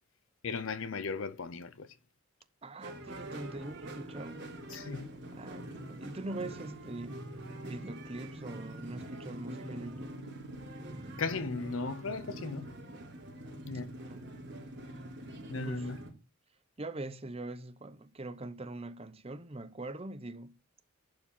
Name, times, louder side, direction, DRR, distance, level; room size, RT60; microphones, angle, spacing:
voice 1, 0.4-1.9 4.7-5.1 11.2-12.7 13.7-13.9 15.5-16.0, left 4 dB, 65° left, 0.6 m, -36 dB
voice 2, 2.6-4.5 5.3-7.2 7.7-10.1 14.0-14.3 15.6-15.9 16.8-20.5, right 2 dB, 25° right, 0.7 m, -43 dB
sound 1, 2.8-16.1, right 1 dB, 55° right, 3.1 m, -44 dB
11.0 x 4.9 x 5.5 m
head